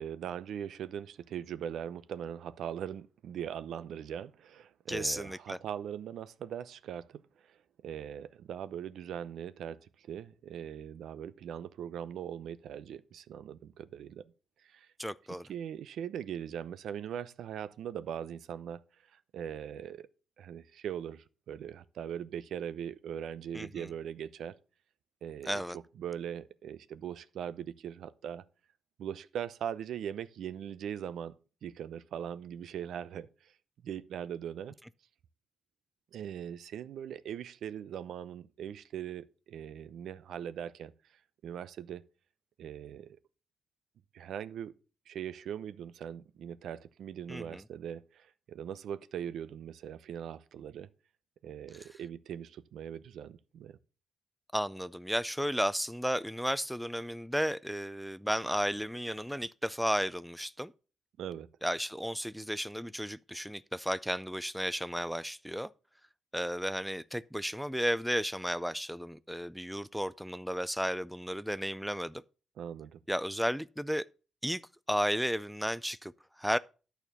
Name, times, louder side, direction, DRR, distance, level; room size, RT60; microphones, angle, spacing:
voice 1, 0.0-7.2 7.5-7.6 7.8-14.2 14.6-14.9 15.5-18.8 19.1-20.1 20.4-24.6 25.2-25.6 26.0-28.4 29.0-31.3 31.6-33.5 33.8-34.7 36.1-40.9 41.4-42.0 42.6-43.2 44.1-44.7 45.1-50.9 51.4-53.8 61.2-61.5 72.6-73.0, right 9 dB, 80° right, 0.6 m, -40 dB
voice 2, 4.9-5.6 15.0-15.5 23.5-23.9 25.4-25.8 47.3-47.6 54.5-60.7 61.6-65.7 66.3-72.2 73.1-74.1 74.4-74.6 74.9-76.1 76.4-76.6, equal, ahead, 0.4 m, -33 dB
11.5 x 4.5 x 6.8 m
cardioid pair, 105°, 0 cm